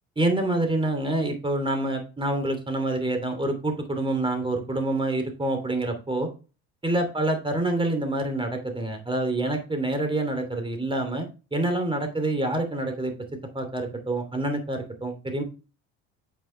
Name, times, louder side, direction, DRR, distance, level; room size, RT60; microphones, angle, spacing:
voice 1, 0.2-6.3 6.8-11.3 11.5-13.1 13.5-15.4, right 2 dB, 15° right, 6 dB, 2.9 m, -27 dB
8.7 x 5.7 x 3.3 m, 0.33 s
hypercardioid pair, 65°, 33 cm